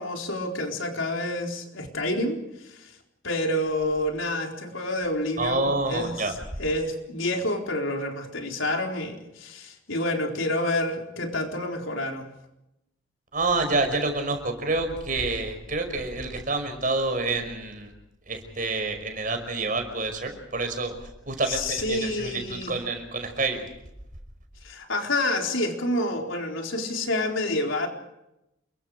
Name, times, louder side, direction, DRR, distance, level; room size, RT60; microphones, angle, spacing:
voice 1, 0.0-2.9 3.2-12.3 21.5-22.7 24.6-27.9, left 1 dB, 85° left, 2 dB, 4.2 m, -28 dB
voice 2, 5.4-6.3 13.3-17.9 18.3-20.9 21.3-23.7, right 3 dB, 45° right, 6 dB, 5.5 m, -28 dB
29.0 x 23.0 x 5.0 m, 0.87 s
head